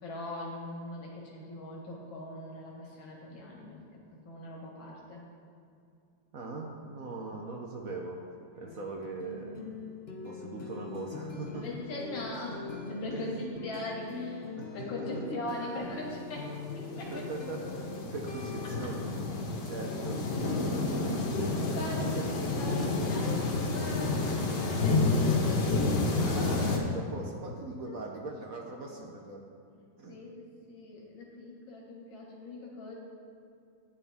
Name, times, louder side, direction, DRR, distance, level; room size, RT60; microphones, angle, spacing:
voice 1, 0.0-4.0 4.3-5.2 8.6-8.8 11.5-13.3 13.6-14.5 14.7-17.3 21.7-25.6 27.9-28.0 30.1-33.0, left 1 dB, 85° left, -3 dB, 2.4 m, -41 dB
voice 2, 6.3-8.2 8.6-9.9 10.2-11.7 13.1-13.3 14.6-15.2 17.1-19.0 19.6-20.9 21.4-21.8 22.1-22.2 26.2-29.4 30.0-30.2, right 3 dB, 55° right, 0 dB, 1.1 m, -40 dB
sound 1, 8.6-19.0, left 4 dB, 50° left, 0.7 m, -42 dB
Rain and Thunder Noise, 15.9-26.8, left 3 dB, 65° left, 1.8 m, -30 dB
13.0 x 9.8 x 3.5 m, 2.4 s
omnidirectional pair, 2.1 m